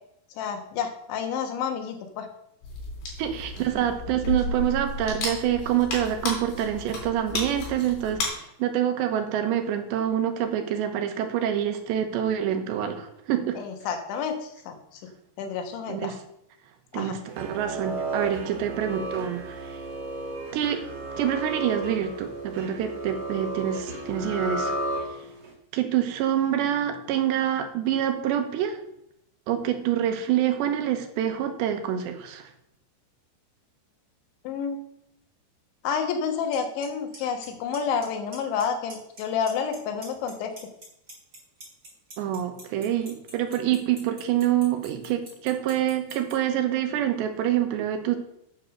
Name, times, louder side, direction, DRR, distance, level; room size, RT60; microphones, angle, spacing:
voice 1, 0.4-2.3 13.6-15.0 15.4-16.2 17.0-17.2 34.5-34.8 35.8-40.5, left 6 dB, 80° left, 5 dB, 3.6 m, -29 dB
sound 1, 2.6-8.3, left 2 dB, 55° left, 5.3 m, -33 dB
voice 2, 3.2-13.6 15.9-16.1 16.9-19.8 20.5-20.9 21.2-24.7 25.2-25.3 25.7-28.8 29.5-32.5 42.2-48.2, right 10 dB, 80° right, 6 dB, 3.2 m, -26 dB
sound 2, 17.3-25.5, right 2 dB, 45° right, 3.0 m, -33 dB
Clock, 36.5-36.6 36.8-37.2 37.4-38.0 38.3-38.6 38.9-39.8 40.0-46.3, right 2 dB, 25° right, 4.6 m, -44 dB
9.3 x 6.7 x 6.6 m, 0.77 s
omnidirectional pair, 5.2 m